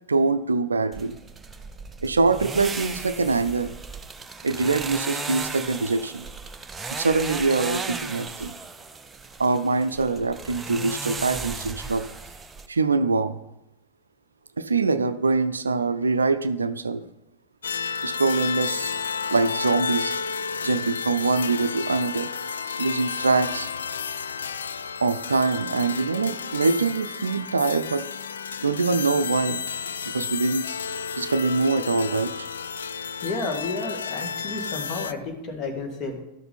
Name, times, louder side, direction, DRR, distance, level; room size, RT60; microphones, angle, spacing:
voice 1, 0.1-1.2 2.0-3.7 4.4-6.2 6.9-8.5 9.4-12.0 12.7-13.4 14.6-17.0 18.0-19.0 19.3-20.2 20.6-22.3 22.8-23.7 25.0-28.0 28.6-29.6 30.1-30.7 31.2-32.3, right 3 dB, 75° right, 13 dB, 0.5 m, -24 dB
sound 1, 0.9-12.7, right 4 dB, 15° right, 0.6 m, -35 dB
sound 2, 17.6-35.1, left 6 dB, 70° left, 0.4 m, -32 dB
voice 2, 33.2-36.2, left 3 dB, 30° left, 3 dB, 2.1 m, -31 dB
12.0 x 6.7 x 4.2 m, 0.87 s
figure-of-eight pair, 90°, 0 cm